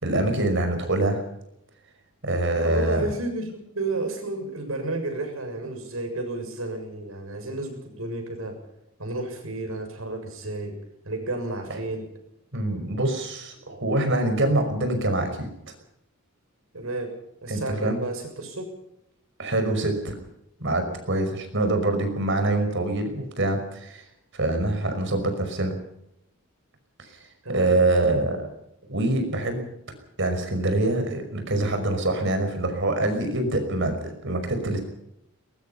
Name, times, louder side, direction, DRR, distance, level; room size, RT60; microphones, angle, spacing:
voice 1, 0.0-1.2 2.2-3.1 12.5-15.5 17.5-18.0 19.4-20.1 20.6-24.0 24.3-25.8 27.0-27.2 27.5-28.5 28.9-29.7 30.2-34.8, right 2 dB, 60° right, 7 dB, 5.5 m, -25 dB
voice 2, 2.6-8.6 9.0-10.8 11.0-12.1 16.7-17.1 17.4-18.7 27.4-27.8, right 2 dB, 80° right, 5 dB, 7.0 m, -31 dB
23.0 x 21.5 x 5.7 m, 0.80 s
head